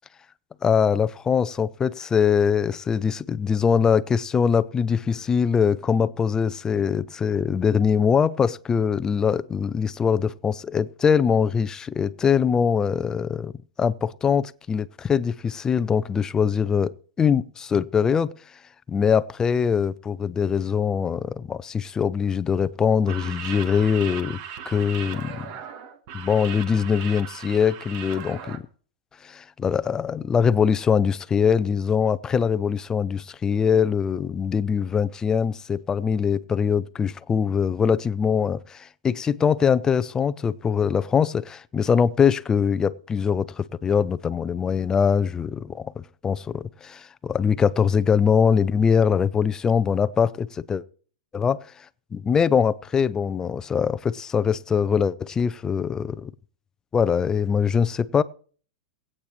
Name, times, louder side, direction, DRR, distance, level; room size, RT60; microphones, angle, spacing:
voice 1, 0.6-13.5 13.8-18.3 18.9-24.4 24.7-25.5 26.1-28.6 29.2-45.9 46.2-50.8 51.3-51.6 52.1-56.3 56.9-58.2, left 6 dB, 15° left, 0.5 m, -22 dB
sound 1, 23.0-28.6, right 8 dB, 50° right, 1.4 m, -37 dB
22.5 x 8.7 x 3.1 m
supercardioid pair, 140°, 4 cm